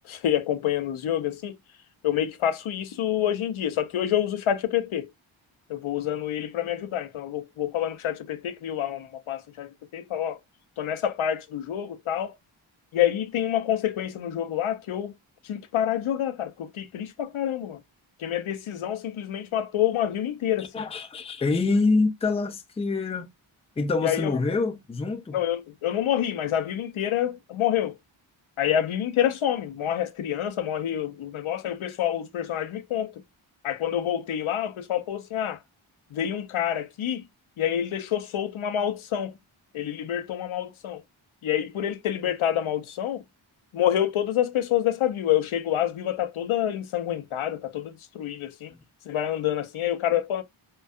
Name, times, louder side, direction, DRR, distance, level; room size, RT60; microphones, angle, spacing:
voice 1, 0.0-1.6 2.0-5.1 5.7-10.4 10.8-12.4 12.9-15.1 15.4-17.8 18.2-20.7 24.0-24.3 25.3-28.0 28.6-33.2 33.6-35.6 36.1-37.2 37.6-39.4 39.7-41.0 41.4-43.2 43.7-48.7 49.1-50.4, left 10 dB, 80° left, 0.5 m, -27 dB
voice 2, 20.6-23.3 23.8-25.3 48.7-48.8, left 3 dB, 15° left, 0.4 m, -26 dB
2.3 x 2.2 x 2.5 m
wide cardioid pair, 60°, 48 cm